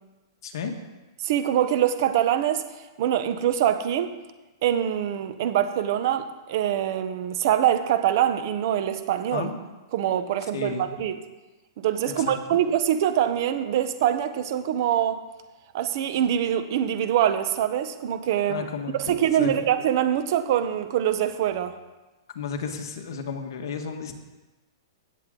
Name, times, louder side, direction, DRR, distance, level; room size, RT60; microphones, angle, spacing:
voice 1, 0.4-0.7 9.3-9.6 10.5-10.9 12.2-12.6 18.5-19.1 19.4-19.7 22.3-24.1, left 6 dB, 65° left, 4 dB, 1.6 m, -33 dB
voice 2, 1.2-2.7 3.0-4.2 4.6-9.5 9.9-11.2 11.8-15.2 15.7-18.7 19.1-21.8, right 10 dB, 45° right, 10 dB, 0.9 m, -24 dB
17.0 x 7.7 x 3.8 m, 1.1 s
hypercardioid pair, 165°, 2 cm